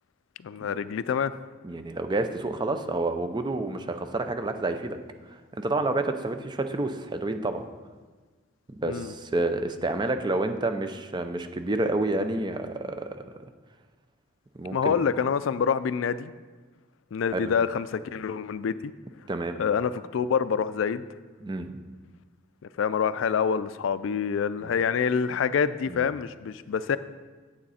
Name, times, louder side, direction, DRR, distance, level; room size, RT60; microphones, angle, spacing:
voice 1, 0.4-1.3 8.9-9.1 14.7-16.3 17.1-18.9 19.6-21.0 22.8-27.0, left 6 dB, 70° left, 15 dB, 0.3 m, -26 dB
voice 2, 1.6-5.0 5.5-7.6 8.8-13.2 14.5-14.9 17.3-17.5 19.3-19.6 21.4-21.7 24.6-24.7 25.9-26.0, right 2 dB, 20° right, 8 dB, 0.5 m, -29 dB
8.8 x 7.8 x 4.2 m, 1.4 s
head